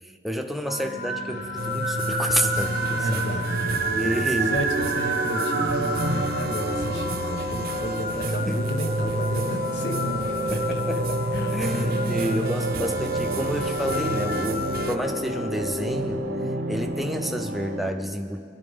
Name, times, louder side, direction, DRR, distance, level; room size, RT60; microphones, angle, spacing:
voice 1, 0.0-3.2 3.9-4.6 8.5-8.6 10.5-11.0 11.5-16.2 16.7-18.4, equal, ahead, 4 dB, 0.5 m, -29 dB
sound 1, 0.7-15.8, left 8 dB, 50° left, 0.7 m, -36 dB
sound 2, 0.8-17.9, right 2 dB, 80° right, 0.8 m, -29 dB
sound 3, 1.6-15.0, right 2 dB, 55° right, 0.5 m, -31 dB
voice 2, 3.0-10.8 11.3-12.0, equal, 75° left, 4 dB, 1.1 m, -33 dB
20.5 x 11.5 x 3.6 m, 2.3 s
head